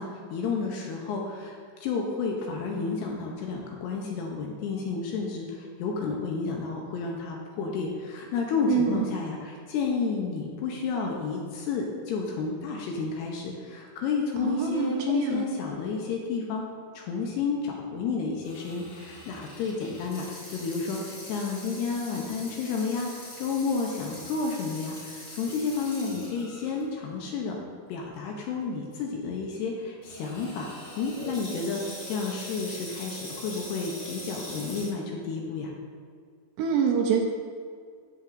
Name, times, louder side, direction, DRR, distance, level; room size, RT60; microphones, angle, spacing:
voice 1, 0.0-16.6 16.9-27.6 27.9-30.7 31.0-35.7, left 4 dB, 75° left, 0 dB, 2.5 m, -31 dB
voice 2, 8.7-9.0 14.4-15.4 36.6-37.2, right 7 dB, 80° right, 1 dB, 2.6 m, -25 dB
Water tap faucet / Sink (filling or washing), 18.4-26.8 27.3-27.4 28.2-28.4 30.0-34.9, left 1 dB, 30° left, 1.5 m, -42 dB
15.5 x 5.9 x 2.6 m, 2.1 s
omnidirectional pair, 5.3 m